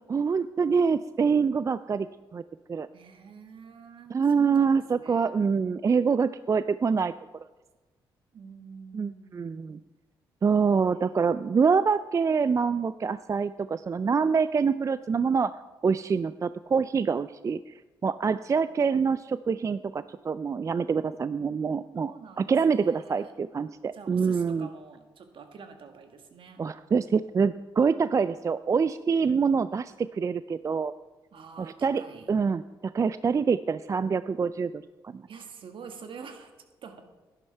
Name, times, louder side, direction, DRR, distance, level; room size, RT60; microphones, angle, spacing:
voice 1, 0.1-2.1 2.3-2.4 2.7-2.9 4.1-7.1 8.9-9.8 10.4-15.6 15.8-17.7 18.0-24.7 26.6-30.9 31.6-32.0 32.3-35.2, right 5 dB, 35° right, 14 dB, 0.3 m, -25 dB
voice 2, 2.9-5.4 8.3-9.8 18.2-19.0 22.0-23.4 23.9-26.6 31.3-32.3 35.3-36.5 36.8-37.0, right 5 dB, 65° right, 6 dB, 1.5 m, -47 dB
11.0 x 11.0 x 4.5 m, 1.2 s
supercardioid pair, 55°, 10 cm